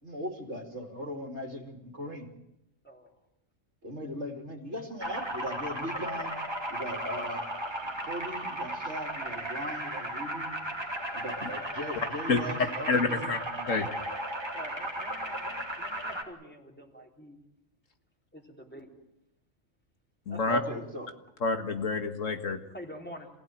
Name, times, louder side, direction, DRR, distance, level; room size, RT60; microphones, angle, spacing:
voice 1, 0.0-2.3 3.8-6.3 6.7-7.5 7.8-10.6 11.1-13.7 20.5-21.1, equal, 55° right, 3.2 m, -38 dB
sound 1, 5.0-16.2, right 1 dB, 20° right, 3.0 m, -35 dB
voice 2, 12.3-13.4 13.7-13.9 20.3-20.6 21.4-22.6, left 4 dB, 70° left, 2.0 m, -28 dB
voice 3, 14.5-17.4 18.3-18.9 20.3-20.8 22.7-23.3, equal, 5° left, 3.7 m, -46 dB
27.5 x 17.0 x 9.3 m
omnidirectional pair, 1.4 m